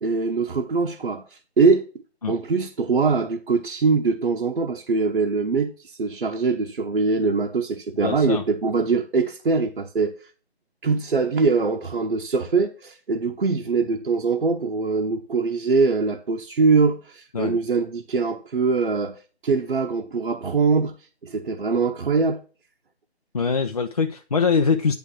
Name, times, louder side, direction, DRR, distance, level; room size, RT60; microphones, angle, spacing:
voice 1, 0.0-1.9 2.3-10.2 10.8-20.9 21.2-22.4, right 4 dB, 65° right, 1.0 m, -22 dB
voice 2, 8.0-8.4 17.3-17.6 23.3-24.9, left 5 dB, 35° left, 0.6 m, -23 dB
10.0 x 3.5 x 6.3 m
figure-of-eight pair, 155°, 33 cm